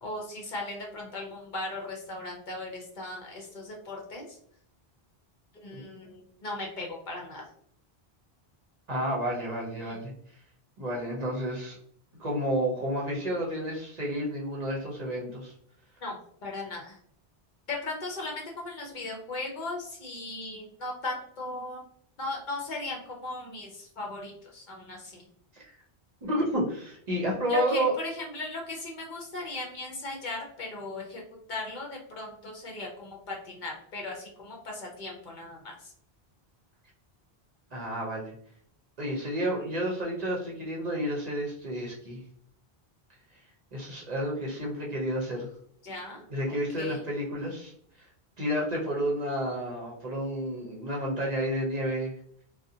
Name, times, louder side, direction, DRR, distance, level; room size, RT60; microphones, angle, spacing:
voice 1, 0.0-4.4 5.5-7.4 9.8-10.0 16.0-16.1 16.4-17.0 17.7-21.8 22.2-25.2 27.5-31.2 31.5-35.9 45.8-47.0, left 2 dB, 55° left, -1 dB, 0.7 m, -37 dB
voice 2, 8.9-10.1 10.8-11.8 12.2-15.5 25.5-25.7 26.2-27.9 37.7-38.3 39.0-42.2 43.7-45.5 46.3-47.7 48.4-52.1, equal, 50° right, -3 dB, 0.6 m, -30 dB
2.5 x 2.0 x 2.6 m, 0.64 s
omnidirectional pair, 1.0 m